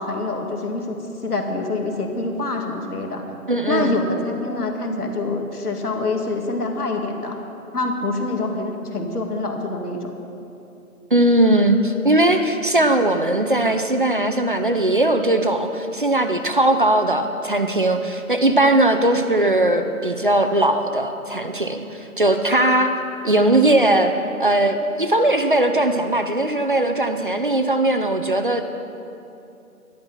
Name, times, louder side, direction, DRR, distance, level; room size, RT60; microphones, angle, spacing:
voice 1, 0.0-3.2 3.7-7.4 7.7-10.1, left 2 dB, 85° left, 2 dB, 2.3 m, -26 dB
voice 2, 3.5-4.0 11.1-22.9 23.2-24.1 24.4-28.6, right 1 dB, 35° right, 7 dB, 0.5 m, -19 dB
12.0 x 11.0 x 5.6 m, 2.7 s
figure-of-eight pair, 160°, 45 cm